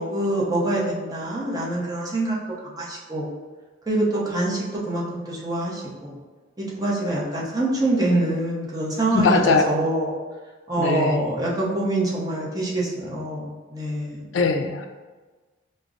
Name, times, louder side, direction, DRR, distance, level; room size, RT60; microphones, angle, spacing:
voice 1, 0.0-2.4 2.6-3.3 3.9-6.2 6.6-10.1 10.7-14.3, right 1 dB, 20° right, -6 dB, 0.7 m, -25 dB
voice 2, 9.1-9.7 10.8-11.2 14.3-14.9, left 4 dB, 75° left, 5 dB, 0.4 m, -21 dB
5.0 x 2.1 x 2.4 m, 1.3 s
head